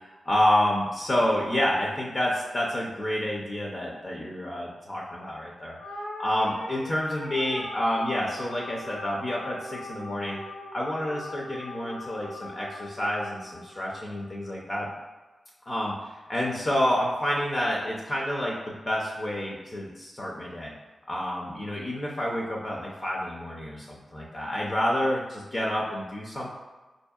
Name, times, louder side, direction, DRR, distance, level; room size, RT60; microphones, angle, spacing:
voice 1, 0.1-5.8 6.2-10.4 10.7-14.9 15.7-20.7 21.1-26.6, left 1 dB, 35° left, -3 dB, 0.5 m, -29 dB
sound 1, 5.8-14.4, left 1 dB, 70° left, 0.8 m, -40 dB
4.5 x 2.6 x 2.3 m, 1.2 s
wide cardioid pair, 145°, 0 cm